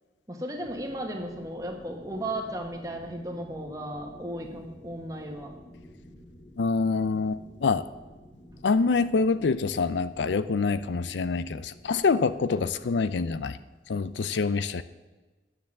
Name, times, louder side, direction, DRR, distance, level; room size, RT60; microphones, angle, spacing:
voice 1, 0.3-5.5 12.5-12.7, right 1 dB, 20° right, 2 dB, 1.4 m, -35 dB
sound 1, 0.5-13.9, left 1 dB, 35° left, 2.0 m, -51 dB
voice 2, 6.6-7.8 8.6-13.6 13.9-14.8, left 4 dB, 85° left, 14 dB, 0.5 m, -26 dB
10.0 x 7.0 x 7.3 m, 1.2 s
head